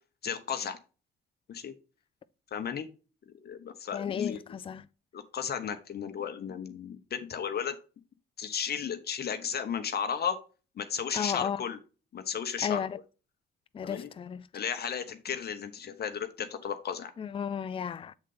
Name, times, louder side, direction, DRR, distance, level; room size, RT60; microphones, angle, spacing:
voice 1, 0.2-0.8 1.5-1.7 2.5-2.9 3.4-4.6 5.1-7.8 8.4-10.4 10.8-11.8 12.1-12.8 13.8-14.1 14.5-17.1, left 7 dB, 55° left, 0.9 m, -34 dB
voice 2, 3.9-4.9 11.1-11.6 12.6-13.0 13.7-14.5 17.2-18.1, left 7 dB, 25° left, 0.4 m, -33 dB
7.2 x 3.8 x 3.9 m
cardioid pair, 90°, 20 cm